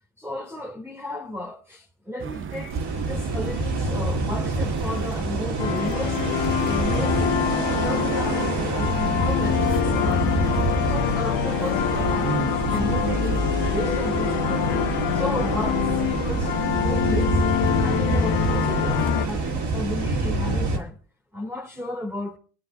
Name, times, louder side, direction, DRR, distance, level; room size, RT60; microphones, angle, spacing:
voice 1, 0.2-2.8 3.0-7.4 7.8-10.4 10.9-14.7 15.1-17.4 17.8-21.0 21.3-22.4, left 1 dB, 5° right, 2.2 m, -34 dB
sound 1, 2.2-20.8, right 6 dB, 30° right, 0.5 m, -35 dB
sound 2, 2.7-20.8, right 3 dB, 60° right, 2.8 m, -27 dB
sound 3, 5.6-19.3, left 10 dB, 85° left, 1.3 m, -25 dB
25.5 x 9.6 x 2.5 m
cardioid pair, 95°, 44 cm